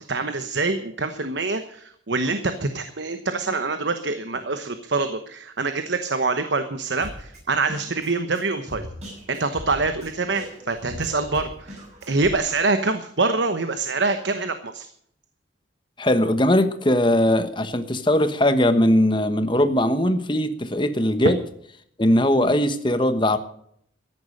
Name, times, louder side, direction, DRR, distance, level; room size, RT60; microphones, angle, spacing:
voice 1, 0.0-8.9 9.3-11.8 12.1-14.9, right 3 dB, 65° right, 9 dB, 1.0 m, -25 dB
Drum kit, 7.0-12.4, equal, 35° right, 7.0 m, -40 dB
voice 2, 16.0-21.4 22.0-23.4, left 1 dB, 25° left, 9 dB, 1.2 m, -20 dB
14.0 x 10.5 x 6.5 m, 0.67 s
head